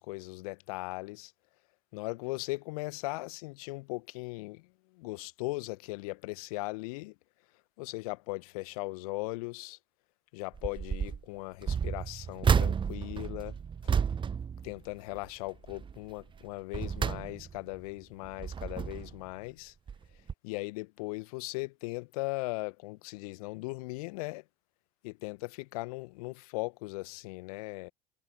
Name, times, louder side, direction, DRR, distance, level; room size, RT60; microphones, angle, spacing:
voice 1, 0.0-1.3 1.9-4.7 4.9-7.1 7.8-9.8 10.3-13.6 14.6-19.7 20.4-24.4 25.0-27.9, left 24 dB, 65° left, 1.4 m, -38 dB
sound 1, 10.5-11.2 11.6-15.3 15.7-16.0 16.5-17.7 18.2-19.2 19.9-20.0 20.3-20.4, right 7 dB, 25° right, 0.9 m, -31 dB
figure-of-eight pair, 70°, 20 cm